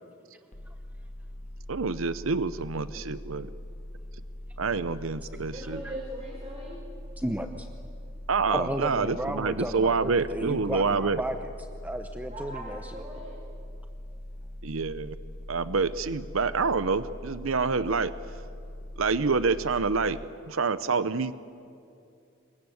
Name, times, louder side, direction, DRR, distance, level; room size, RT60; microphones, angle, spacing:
sound 1, 0.5-20.3, left 1 dB, 35° left, 1.0 m, -42 dB
voice 1, 1.7-3.5 4.6-5.8 8.3-11.2 14.6-15.2 15.5-18.1 19.0-20.2 20.5-21.3, right 4 dB, 70° right, 14 dB, 0.7 m, -27 dB
voice 2, 5.5-6.8 12.3-13.3, right 1 dB, 30° right, -3 dB, 4.8 m, -40 dB
voice 3, 7.2-7.7 8.5-13.0, right 1 dB, 10° right, 6 dB, 0.8 m, -34 dB
27.0 x 23.0 x 7.9 m, 2.6 s
head